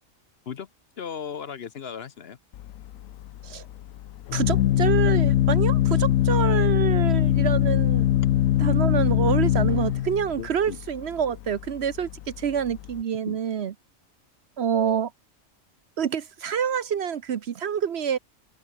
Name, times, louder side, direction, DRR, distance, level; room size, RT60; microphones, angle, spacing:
voice 1, 1.0-2.4 10.4-10.8 13.3-13.4, left 7 dB, 55° left, 1.0 m, -36 dB
Organ, 2.5-13.0, left 12 dB, 85° left, 1.1 m, -23 dB
voice 2, 4.3-8.1 8.6-13.7 14.6-15.1 16.0-18.2, right 8 dB, 60° right, 1.0 m, -27 dB
open air
omnidirectional pair, 1.3 m